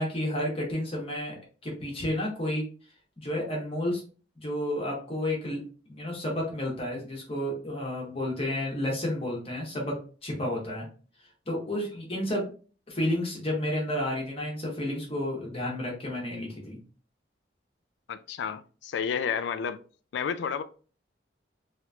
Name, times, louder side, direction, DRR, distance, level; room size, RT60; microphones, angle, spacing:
voice 1, 0.0-2.6 3.2-4.0 4.4-5.6 5.9-9.9 10.2-10.9 11.5-12.5 12.9-16.8, left 1 dB, 30° left, 1.1 m, -31 dB
voice 2, 18.1-19.8 20.1-20.6, left 7 dB, 70° left, 0.3 m, -31 dB
3.2 x 2.9 x 2.3 m
head